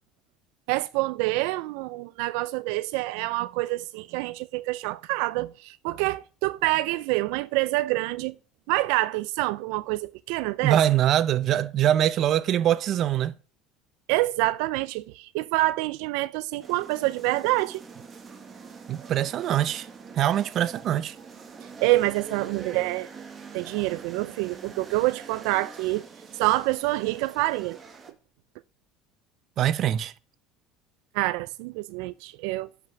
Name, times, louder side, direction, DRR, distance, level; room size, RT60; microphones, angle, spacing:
voice 1, 0.7-8.4 8.7-10.8 14.1-17.8 21.8-23.1 23.5-26.1 26.3-27.8 31.1-32.7, right 19 dB, 80° right, 0.4 m, -27 dB
voice 2, 10.6-13.3 18.9-19.9 20.1-21.1 29.6-30.1, right 11 dB, 45° right, 0.7 m, -23 dB
sound 1, 16.6-28.1, right 5 dB, 25° right, 1.8 m, -44 dB
10.5 x 6.0 x 6.0 m
cardioid pair, 135°, 0 cm